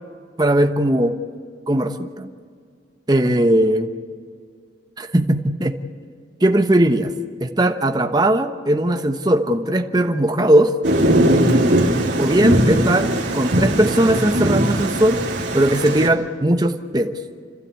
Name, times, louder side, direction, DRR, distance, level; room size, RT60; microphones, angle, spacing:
voice 1, 0.4-1.2 1.7-2.3 3.1-3.9 5.0-5.8 6.4-7.1 7.4-10.7 12.2-15.2 15.5-17.1, right 1 dB, 20° right, 5 dB, 1.1 m, -18 dB
Thunder, 10.8-16.1, right 1 dB, 65° right, 3.0 m, -19 dB
30.0 x 12.5 x 8.4 m, 2.1 s
head